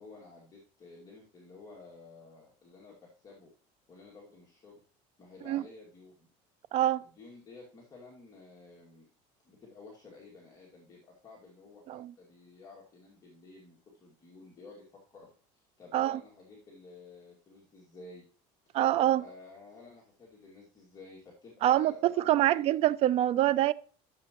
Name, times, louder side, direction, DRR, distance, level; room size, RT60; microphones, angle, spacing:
voice 1, 0.0-3.5 3.9-4.8 5.2-6.3 7.0-9.1 9.4-18.3 18.7-22.7, left 3 dB, 25° left, 2.2 m, -53 dB
voice 2, 6.7-7.0 11.9-12.1 15.9-16.2 18.7-19.2 21.6-23.7, right 13 dB, 40° right, 0.4 m, -25 dB
12.5 x 7.2 x 3.0 m
cardioid pair, 155°, 15 cm